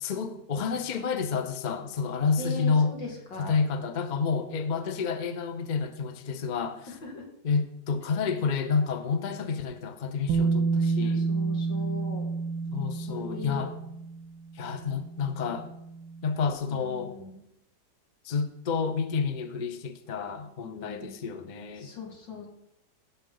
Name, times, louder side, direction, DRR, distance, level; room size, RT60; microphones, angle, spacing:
voice 1, 0.0-2.9 3.4-6.9 7.4-11.3 12.7-13.7 14.6-15.7 16.2-17.1 18.2-21.9, left 5 dB, 45° left, 9 dB, 0.6 m, -29 dB
voice 2, 2.4-3.6 6.9-7.3 10.9-12.3 12.6-13.6 16.7-17.4 20.6-21.2 21.8-22.5, left 2 dB, 85° left, -1 dB, 3.0 m, -40 dB
Bass guitar, 10.3-16.3, right 4 dB, 90° right, 1.3 m, -30 dB
15.5 x 7.3 x 3.9 m, 0.81 s
omnidirectional pair, 2.0 m